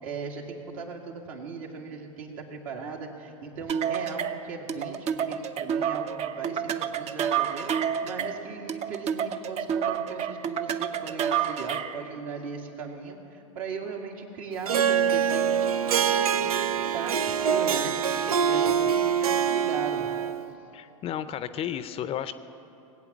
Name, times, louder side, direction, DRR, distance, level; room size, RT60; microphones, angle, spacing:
voice 1, 0.0-20.1 20.5-20.6, right 5 dB, 65° right, 1 dB, 2.2 m, -38 dB
sound 1, 3.7-12.0, right 8 dB, 35° right, 0.6 m, -29 dB
Harp, 14.7-20.5, right 8 dB, 90° right, 0.5 m, -24 dB
voice 2, 20.7-22.3, left 10 dB, 30° left, 13 dB, 0.5 m, -33 dB
18.5 x 8.5 x 7.3 m, 2.9 s
hypercardioid pair, 105°, 18 cm